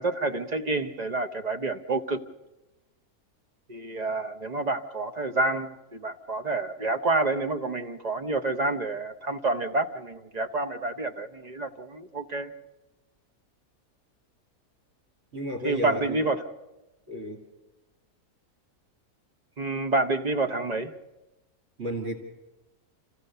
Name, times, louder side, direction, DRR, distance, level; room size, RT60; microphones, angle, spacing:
voice 1, 0.0-2.2 3.7-12.5 15.6-16.4 19.6-20.9, right 2 dB, 35° right, 8 dB, 0.9 m, -28 dB
voice 2, 15.3-16.2 17.1-17.5 21.8-22.2, equal, 50° right, 2 dB, 2.5 m, -32 dB
26.5 x 15.5 x 6.8 m, 1.1 s
omnidirectional pair, 1.6 m